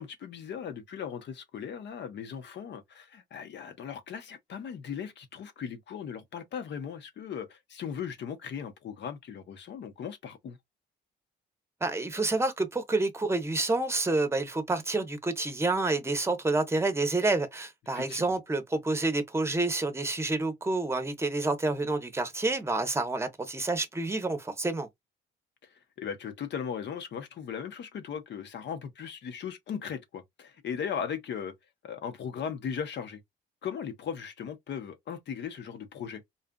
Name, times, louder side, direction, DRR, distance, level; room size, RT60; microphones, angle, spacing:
voice 1, 0.0-10.6 17.9-18.3 26.0-31.5 31.8-33.2 33.6-36.2, left 7 dB, 60° left, 0.8 m, -38 dB
voice 2, 11.8-24.9, right 2 dB, 15° right, 0.8 m, -28 dB
3.9 x 2.4 x 2.2 m
cardioid pair, 90°, 20 cm